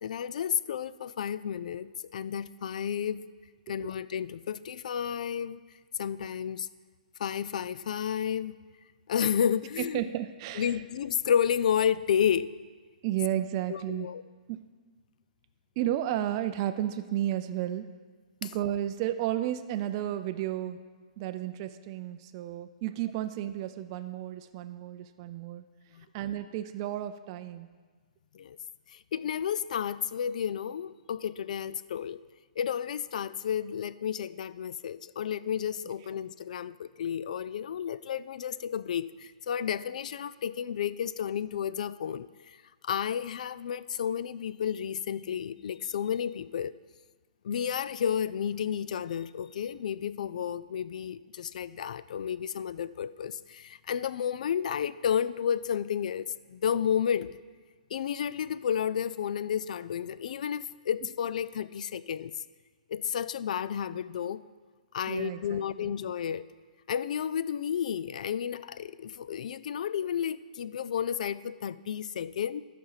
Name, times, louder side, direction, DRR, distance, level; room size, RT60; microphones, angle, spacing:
voice 1, 0.0-3.2 3.7-5.6 6.0-6.7 7.2-8.6 9.1-10.0 10.6-12.5 13.7-14.2 18.4-18.5 25.9-26.1 28.3-28.6 28.9-32.2 32.6-42.6 42.8-46.7 47.4-57.3 57.9-62.3 62.9-64.4 64.9-66.5 66.9-72.6, left 8 dB, 60° left, 17 dB, 0.4 m, -31 dB
voice 2, 9.8-10.8 13.0-14.1 14.5-14.6 15.8-17.9 18.4-20.8 21.2-25.6 26.1-27.7 65.1-65.9, right 12 dB, 35° right, 9 dB, 0.4 m, -32 dB
12.5 x 5.2 x 5.6 m, 1.5 s
hypercardioid pair, 155°, 4 cm